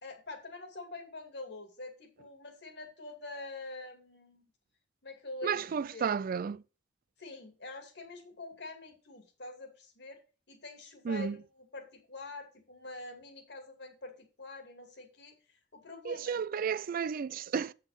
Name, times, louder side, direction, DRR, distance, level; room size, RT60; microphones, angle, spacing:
voice 1, 0.0-4.5 5.0-6.1 7.2-10.2 10.5-15.3 15.7-16.4, left 2 dB, 65° left, 2.4 m, -46 dB
voice 2, 5.4-6.6 11.1-11.4 16.0-17.7, right 6 dB, 50° right, 0.4 m, -32 dB
8.1 x 5.8 x 5.7 m
head